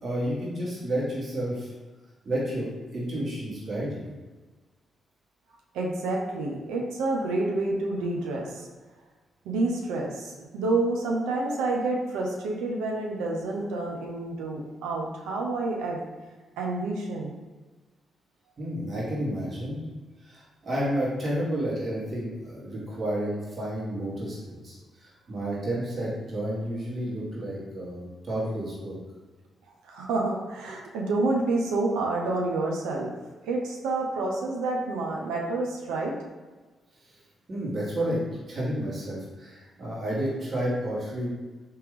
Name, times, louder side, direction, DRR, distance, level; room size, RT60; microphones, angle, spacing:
voice 1, 0.0-1.7 2.2-4.0 18.6-19.8 20.2-29.0 37.5-41.3, right 1 dB, 50° right, -6 dB, 1.5 m, -31 dB
voice 2, 5.7-8.7 9.5-16.0 16.6-17.3 29.8-33.1 33.4-36.1, right 2 dB, 85° right, -1 dB, 0.5 m, -28 dB
3.5 x 2.9 x 3.2 m, 1.3 s
hypercardioid pair, 45°, 0 cm